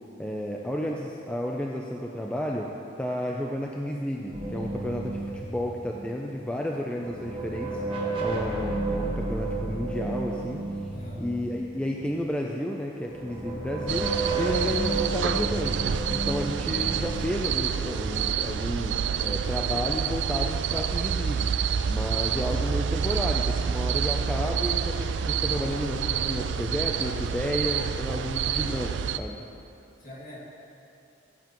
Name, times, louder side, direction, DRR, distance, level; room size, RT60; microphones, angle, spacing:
voice 1, 0.2-2.7 3.0-7.8 8.2-10.6 11.2-14.1 14.4-15.8 16.1-21.5 21.9-29.4, equal, 5° left, -1 dB, 0.4 m, -32 dB
sound 1, 4.3-6.5 6.9-12.1 13.0-18.4, right 2 dB, 30° right, 1.4 m, -32 dB
voice 2, 10.9-11.3 30.0-30.4, equal, 45° left, -5 dB, 2.1 m, -44 dB
sound 2, 13.9-29.2, right 7 dB, 65° right, 0.3 m, -28 dB
17.0 x 7.3 x 3.0 m, 2.8 s
head